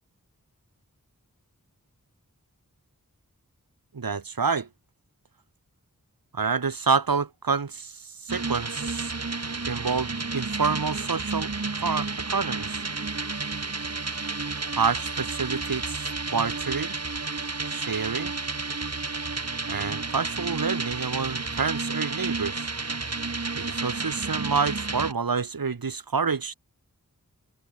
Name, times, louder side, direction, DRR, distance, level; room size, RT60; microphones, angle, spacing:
voice 1, 3.9-4.7 6.3-9.2 9.6-12.8 14.7-17.0 17.7-18.3 19.7-22.7 23.5-26.5, right 5 dB, 75° right, 1.3 m, -28 dB
sound 1, 8.3-25.1, right 3 dB, 45° right, 1.5 m, -31 dB
wide cardioid pair, 40°, 35 cm